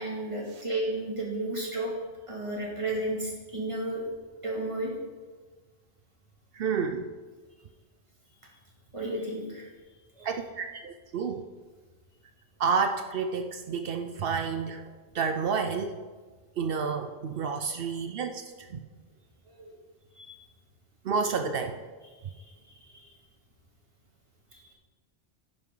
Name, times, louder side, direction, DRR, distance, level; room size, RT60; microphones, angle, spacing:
voice 1, 0.0-1.9 2.3-4.0 4.4-4.9 8.9-9.7 10.2-10.3 19.6-19.7 20.2-20.3 22.4-22.5 22.9-23.1 24.5-24.7, right 1 dB, 30° right, -3 dB, 2.4 m, -33 dB
voice 2, 6.5-7.1 10.2-11.5 12.6-16.0 16.6-18.8 21.0-21.8, right 5 dB, 70° right, 7 dB, 0.8 m, -30 dB
11.0 x 10.5 x 3.9 m, 1.4 s
omnidirectional pair, 1.0 m